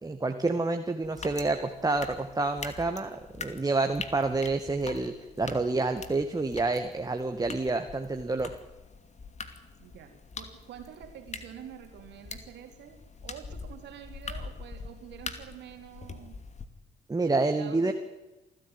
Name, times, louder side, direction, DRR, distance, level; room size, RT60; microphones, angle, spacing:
voice 1, 0.0-8.5 17.1-17.9, right 3 dB, 20° right, 5 dB, 2.1 m, -28 dB
sound 1, 1.0-16.7, left 4 dB, 35° left, 2.6 m, -44 dB
voice 2, 9.8-16.4 17.4-17.9, right 10 dB, 60° right, 6 dB, 3.5 m, -47 dB
27.0 x 15.5 x 9.3 m, 1.1 s
figure-of-eight pair, 45°, 20 cm